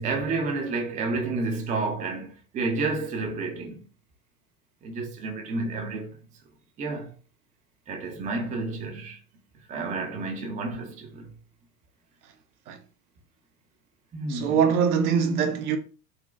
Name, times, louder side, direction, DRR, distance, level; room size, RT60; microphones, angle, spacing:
voice 1, 0.0-3.8 4.8-6.2 6.8-7.1 7.9-9.2 9.7-11.3 14.1-14.6, right 3 dB, 15° right, 0.5 m, -30 dB
voice 2, 14.3-15.8, right 7 dB, 70° right, 0.7 m, -23 dB
3.9 x 2.1 x 2.3 m
hypercardioid pair, 90°, 46 cm